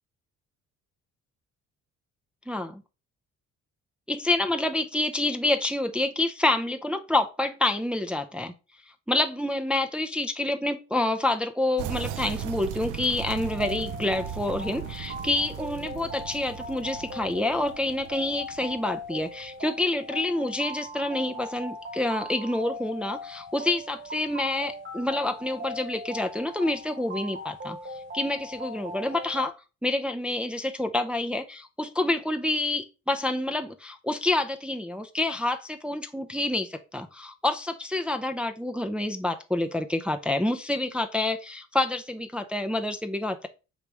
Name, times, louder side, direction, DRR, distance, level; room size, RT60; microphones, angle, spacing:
voice 1, 2.5-2.8 4.1-8.5 9.1-27.8 28.1-29.5 29.8-43.5, left 2 dB, 5° right, 0.4 m, -28 dB
sound 1, 11.8-19.5, right 9 dB, 80° right, 0.5 m, -38 dB
sound 2, 13.2-29.5, left 1 dB, 40° right, 1.1 m, -40 dB
3.4 x 3.0 x 4.7 m
cardioid pair, 90°, 30 cm